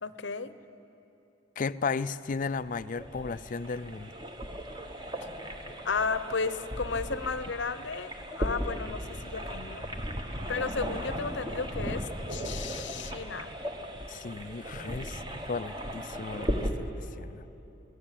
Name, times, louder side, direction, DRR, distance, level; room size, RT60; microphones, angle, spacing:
voice 1, 0.0-0.5 5.8-8.1 8.4-9.9 10.5-13.5, left 4 dB, 65° left, 13 dB, 0.8 m, -33 dB
voice 2, 1.6-4.1 14.1-17.4, left 4 dB, 45° left, 15 dB, 0.4 m, -35 dB
sound 1, 2.3-16.7, equal, 25° right, 1.3 m, -37 dB
25.0 x 17.5 x 7.5 m, 3.0 s
head